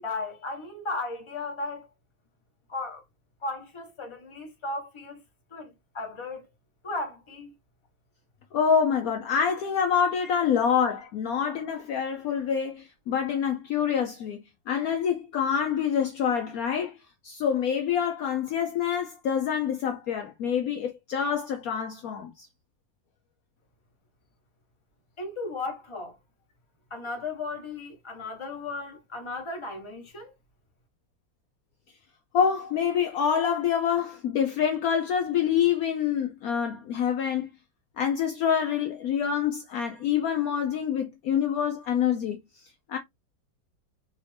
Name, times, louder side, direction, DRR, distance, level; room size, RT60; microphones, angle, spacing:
voice 1, 0.0-1.9 2.7-3.0 3.4-5.2 5.5-6.4 6.8-7.5 25.2-26.2 26.9-30.3, left 3 dB, 20° left, 0.8 m, -35 dB
voice 2, 8.5-22.5 32.3-37.5 38.0-43.0, left 7 dB, 80° left, 0.8 m, -26 dB
4.1 x 2.5 x 3.2 m
omnidirectional pair, 2.1 m